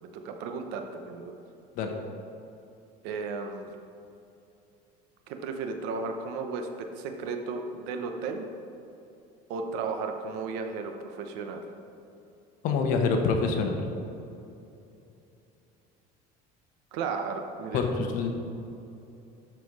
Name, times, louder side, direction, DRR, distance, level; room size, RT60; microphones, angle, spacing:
voice 1, 0.0-1.4 3.0-3.7 5.3-8.5 9.5-11.6 16.9-17.8, right 4 dB, 65° right, 5 dB, 0.9 m, -34 dB
voice 2, 12.6-13.8 17.7-18.3, left 4 dB, 50° left, 4 dB, 1.0 m, -26 dB
12.0 x 4.6 x 4.7 m, 2.8 s
cardioid pair, 170°, 18 cm